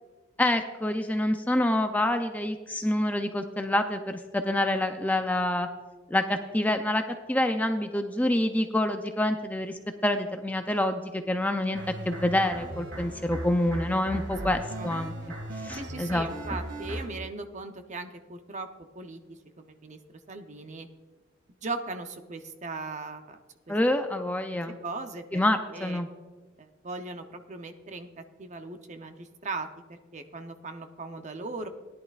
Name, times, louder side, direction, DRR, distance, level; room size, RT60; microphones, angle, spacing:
voice 1, 0.4-5.7 6.1-7.0 7.3-11.8 12.1-15.1 15.6-16.3 23.7-24.8 25.3-26.1, left 1 dB, 10° left, 6 dB, 0.4 m, -27 dB
sound 1, 11.7-17.1, right 1 dB, 60° right, 1.9 m, -37 dB
voice 2, 14.3-14.9 15.7-18.7 19.0-19.2 19.6-20.0 20.3-20.9 21.6-23.4 23.7-23.8 24.8-25.4 25.7-26.0 26.6-31.7, right 3 dB, 35° right, 7 dB, 0.7 m, -38 dB
18.0 x 10.5 x 2.4 m, 1.4 s
head